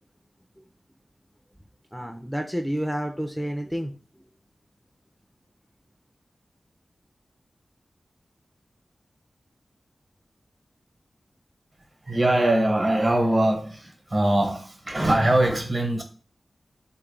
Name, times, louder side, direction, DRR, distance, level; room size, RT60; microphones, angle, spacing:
voice 1, 1.9-4.2, equal, ahead, 0.4 m, -30 dB
voice 2, 12.0-16.0, right 1 dB, 45° right, 1.0 m, -22 dB
3.6 x 2.3 x 3.7 m
cardioid pair, 55°, 0 cm